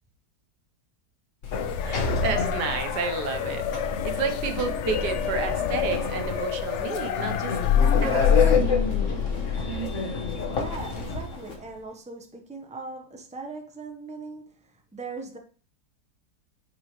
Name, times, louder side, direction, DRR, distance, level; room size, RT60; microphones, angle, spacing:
Sliding door, 1.4-11.6, left 5 dB, 50° left, 1.6 m, -26 dB
sound 1, 1.5-8.6, left 9 dB, 75° left, 0.6 m, -31 dB
voice 1, 1.8-7.6 8.0-8.5, right 5 dB, 80° right, 8 dB, 1.6 m, -31 dB
voice 2, 10.3-15.4, right 3 dB, 5° right, 2 dB, 1.0 m, -40 dB
9.9 x 5.4 x 3.2 m, 0.41 s
omnidirectional pair, 1.8 m